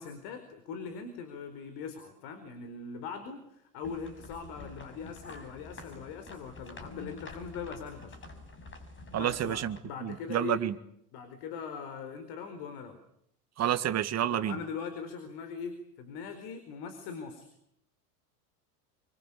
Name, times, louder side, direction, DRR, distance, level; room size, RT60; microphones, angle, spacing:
voice 1, 0.0-8.2 9.1-10.6 11.1-13.0 14.3-17.5, left 6 dB, 55° left, 10 dB, 4.5 m, -41 dB
sound 1, 3.8-9.8, left 2 dB, 25° left, 6.4 m, -48 dB
voice 2, 9.1-10.7 13.6-14.6, right 11 dB, 35° right, 10 dB, 2.0 m, -30 dB
27.5 x 24.5 x 8.6 m, 0.76 s
hypercardioid pair, 100°, 46 cm